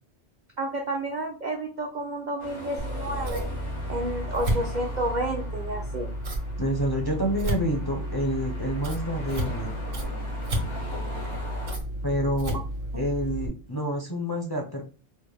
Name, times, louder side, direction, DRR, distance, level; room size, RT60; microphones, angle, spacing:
voice 1, 0.6-3.4 3.9-6.1, right 1 dB, 55° right, 2 dB, 0.5 m, -30 dB
sound 1, 2.4-11.8, left 1 dB, 75° left, 1.5 m, -40 dB
Scissors, 2.8-13.5, right 1 dB, 85° right, 1.4 m, -32 dB
voice 2, 6.6-9.8 12.0-12.6 12.9-14.8, equal, 25° left, 0 dB, 0.5 m, -28 dB
5.4 x 2.1 x 3.3 m, 0.36 s
omnidirectional pair, 1.2 m